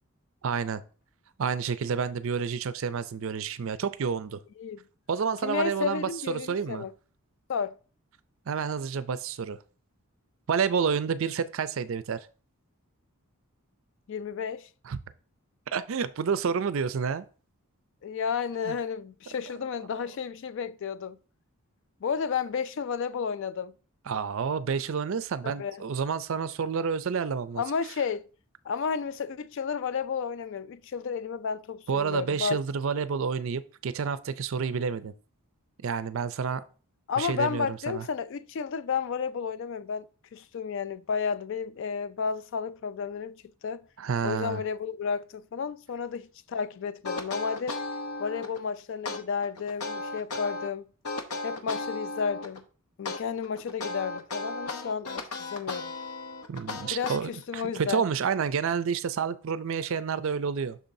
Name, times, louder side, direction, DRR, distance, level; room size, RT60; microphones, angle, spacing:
voice 1, 0.4-0.8 1.4-4.4 5.1-6.9 8.5-9.6 10.5-12.2 14.9-15.0 15.7-17.2 18.7-18.8 19.9-20.0 24.1-27.6 31.9-35.1 35.8-36.6 37.2-38.1 44.0-44.6 56.5-60.8, right 6 dB, 60° right, 0.4 m, -29 dB
voice 2, 5.4-6.9 7.5-7.7 14.1-14.7 18.0-21.2 22.0-23.7 25.4-25.8 27.6-28.3 28.7-32.6 37.1-43.3 43.6-43.8 44.2-47.8 48.2-50.8 51.4-52.6 53.0-55.9 56.9-58.0, left 6 dB, 55° left, 0.3 m, -32 dB
sound 1, 47.0-48.6 49.1-50.7 51.0-52.6 53.1-57.6, left 3 dB, 85° left, 0.8 m, -35 dB
6.9 x 6.1 x 2.6 m
head